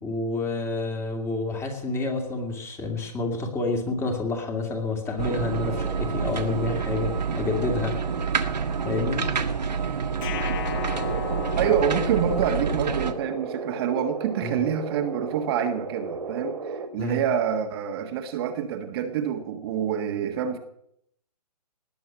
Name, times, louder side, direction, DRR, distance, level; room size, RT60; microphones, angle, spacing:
voice 1, 0.0-7.9 8.8-9.3 14.4-14.6 17.0-17.2, left 3 dB, 10° left, 3 dB, 2.5 m, -29 dB
sound 1, 5.2-13.1, right 6 dB, 85° right, 1.7 m, -28 dB
sound 2, 10.2-13.3, left 11 dB, 35° left, 0.9 m, -36 dB
sound 3, 10.9-16.9, right 4 dB, 65° right, 2.4 m, -34 dB
voice 2, 11.6-20.6, right 8 dB, 35° right, 5 dB, 1.6 m, -27 dB
19.0 x 8.0 x 8.9 m, 0.72 s
hypercardioid pair, 145°, 21 cm